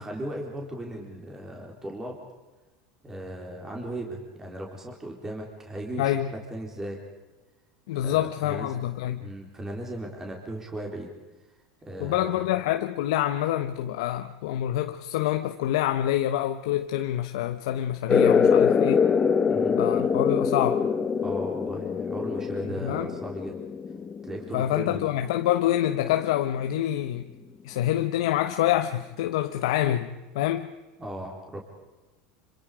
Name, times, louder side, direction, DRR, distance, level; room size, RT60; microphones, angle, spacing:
voice 1, 0.0-2.2 3.0-7.0 8.0-8.9 9.2-11.1 11.8-12.5 19.5-19.8 21.2-23.6 24.2-25.1 31.0-31.6, right 1 dB, 15° right, 4.1 m, -37 dB
voice 2, 6.0-6.3 7.9-9.2 12.0-19.1 19.8-20.9 22.8-23.1 24.5-27.3 27.6-30.7, left 12 dB, 80° left, 1.1 m, -26 dB
sound 1, 18.1-25.2, left 6 dB, 25° left, 1.3 m, -24 dB
27.0 x 26.0 x 5.1 m
supercardioid pair, 125°, 3 cm